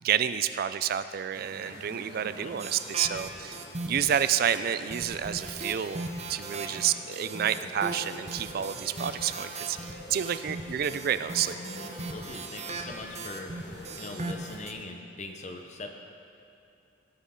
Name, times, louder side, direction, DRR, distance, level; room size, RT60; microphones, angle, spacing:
voice 1, 0.0-3.6 3.8-11.6, right 9 dB, 50° right, 13 dB, 0.3 m, -29 dB
sound 1, 1.3-14.7, left 1 dB, 55° left, 1.6 m, -47 dB
sound 2, 2.6-4.6 4.9-14.7, right 2 dB, 35° right, 0.7 m, -38 dB
voice 2, 12.1-16.0, left 2 dB, 35° left, 4 dB, 0.8 m, -42 dB
17.0 x 6.3 x 3.8 m, 2.8 s
head